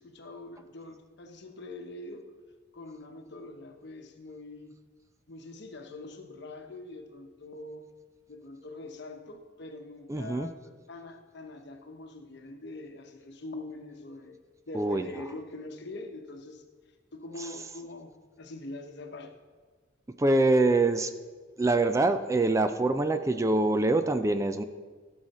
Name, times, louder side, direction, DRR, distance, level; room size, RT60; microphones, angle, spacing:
voice 1, 0.0-2.3 2.7-4.7 5.3-7.9 8.3-14.4 14.7-16.6 17.1-19.4, left 2 dB, 60° left, 5 dB, 1.0 m, -43 dB
voice 2, 10.1-10.5 14.7-15.0 20.2-21.1 21.6-24.6, right 2 dB, 15° right, 9 dB, 0.4 m, -24 dB
16.0 x 6.4 x 4.2 m, 1.5 s
head